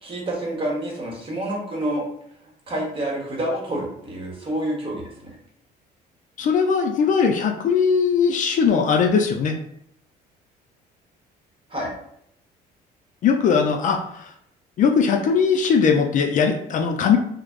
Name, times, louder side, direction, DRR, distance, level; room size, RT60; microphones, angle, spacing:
voice 1, 0.0-2.0 2.7-5.3 11.7-11.9, right 1 dB, 30° right, -2 dB, 1.0 m, -28 dB
voice 2, 6.4-9.6 13.2-14.3 14.8-17.2, left 6 dB, 50° left, 3 dB, 0.4 m, -19 dB
3.2 x 2.0 x 2.4 m, 0.71 s
cardioid pair, 110°, 17 cm